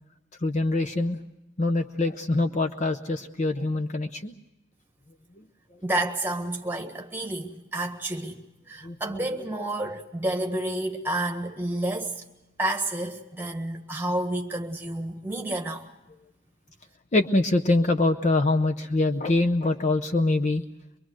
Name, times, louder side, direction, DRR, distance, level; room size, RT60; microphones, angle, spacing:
voice 1, 0.4-1.2 1.6-4.3 5.4-5.5 8.8-9.2 17.1-20.6, left 2 dB, 35° left, 7 dB, 0.7 m, -24 dB
voice 2, 5.8-8.4 8.7-12.1 12.6-15.9, right 1 dB, 10° right, 3 dB, 1.6 m, -30 dB
24.0 x 23.0 x 6.2 m, 0.95 s
head